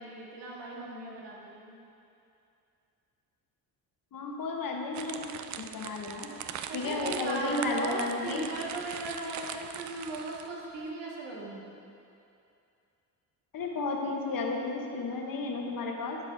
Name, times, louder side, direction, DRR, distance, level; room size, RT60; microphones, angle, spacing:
voice 1, 0.0-1.8 6.7-11.7, right 2 dB, 70° right, -4 dB, 1.9 m, -37 dB
voice 2, 4.1-5.2 5.6-6.3 6.7-8.5 13.5-16.2, left 3 dB, 50° left, 1 dB, 1.2 m, -33 dB
sound 1, 4.9-10.7, right 8 dB, 45° right, 0.4 m, -41 dB
11.0 x 4.8 x 3.5 m, 2.6 s
supercardioid pair, 70°, 44 cm